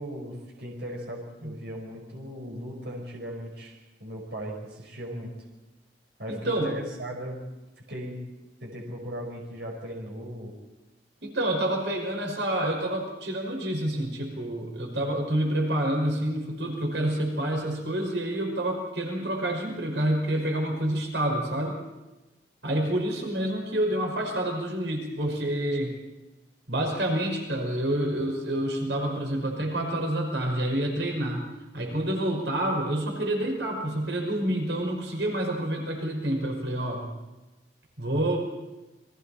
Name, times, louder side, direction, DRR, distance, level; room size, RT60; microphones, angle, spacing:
voice 1, 0.0-5.3 6.2-7.4 7.9-8.2 8.6-10.5, equal, 70° right, -1 dB, 5.4 m, -37 dB
voice 2, 6.3-6.7 11.2-21.8 22.6-25.9 26.7-31.5 31.7-37.0 38.0-38.5, right 1 dB, 85° right, 1 dB, 5.6 m, -28 dB
30.0 x 23.0 x 4.4 m, 1.1 s
head